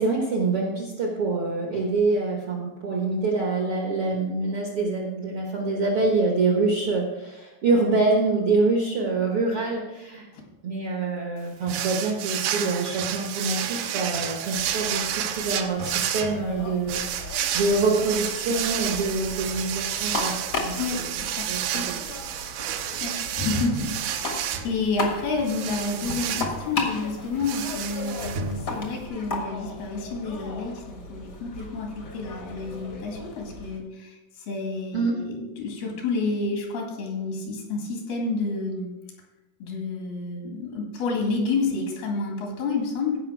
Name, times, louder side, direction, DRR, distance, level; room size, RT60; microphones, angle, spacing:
voice 1, 0.0-10.3 10.6-17.0 17.5-20.3 20.6-21.0 21.5-22.0 22.9-23.0 34.9-35.2, right 3 dB, 65° right, -1 dB, 1.4 m, -25 dB
sound 1, 11.7-29.1, right 9 dB, 80° right, 2.5 m, -31 dB
sound 2, 14.5-33.8, left 2 dB, 55° left, 1.1 m, -37 dB
voice 2, 20.8-21.9 22.6-38.9 39.6-43.2, left 3 dB, 80° left, 1 dB, 4.0 m, -30 dB
15.5 x 5.5 x 4.6 m, 1.0 s
omnidirectional pair, 4.3 m